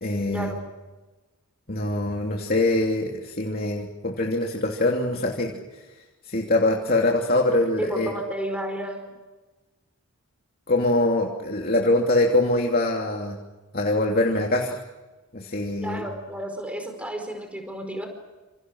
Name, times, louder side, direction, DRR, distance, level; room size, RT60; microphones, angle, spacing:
voice 1, 0.0-0.6 1.7-5.5 6.3-8.1 10.7-13.4 13.7-14.8 15.3-16.0, left 2 dB, 45° left, 0 dB, 3.0 m, -23 dB
voice 2, 7.8-9.1 15.8-18.1, right 1 dB, 5° right, 4 dB, 4.8 m, -32 dB
29.5 x 28.0 x 6.5 m, 1.2 s
head